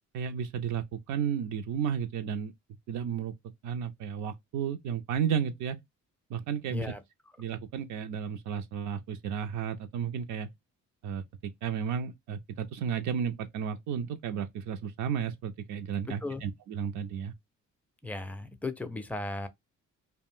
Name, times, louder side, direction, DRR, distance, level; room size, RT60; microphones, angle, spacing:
voice 1, 0.1-2.5 2.9-3.3 3.6-5.8 6.3-6.9 7.4-10.5 11.0-11.2 11.6-17.3, right 7 dB, 75° right, 0.5 m, -33 dB
voice 2, 6.7-7.0 16.2-16.4 18.0-19.5, left 2 dB, 5° left, 0.4 m, -36 dB
2.4 x 2.1 x 3.6 m
cardioid pair, 90°, 30 cm